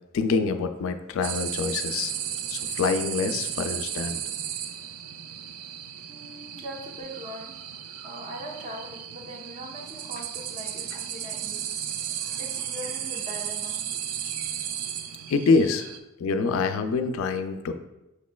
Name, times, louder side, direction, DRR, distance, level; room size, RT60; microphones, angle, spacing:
voice 1, 0.1-2.1 2.5-4.2 15.3-15.9 16.2-17.7, left 4 dB, 70° left, 8 dB, 0.3 m, -25 dB
sound 1, 1.2-16.0, right 9 dB, 85° right, 0.3 m, -34 dB
voice 2, 6.1-7.5 8.0-11.6 12.4-13.8, equal, 35° right, -1 dB, 0.8 m, -41 dB
6.1 x 3.0 x 2.2 m, 0.95 s
head